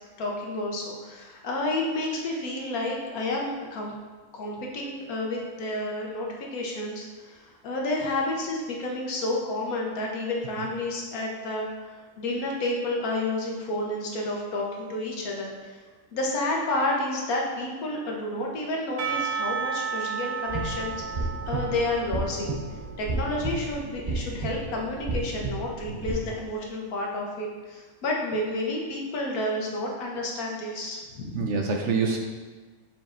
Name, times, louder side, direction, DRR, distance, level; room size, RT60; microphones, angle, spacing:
voice 1, 0.2-3.9 4.3-15.8 16.1-22.6 23.0-31.5, left 2 dB, 75° left, -1 dB, 1.4 m, -30 dB
Percussion / Church bell, 19.0-23.4, right 6 dB, 80° right, 1.3 m, -33 dB
sound 1, 20.5-26.1, right 2 dB, 40° right, 0.5 m, -32 dB
voice 2, 25.9-26.2 31.3-32.2, right 4 dB, 65° right, 2 dB, 0.8 m, -27 dB
7.1 x 5.3 x 2.5 m, 1.3 s
omnidirectional pair, 1.6 m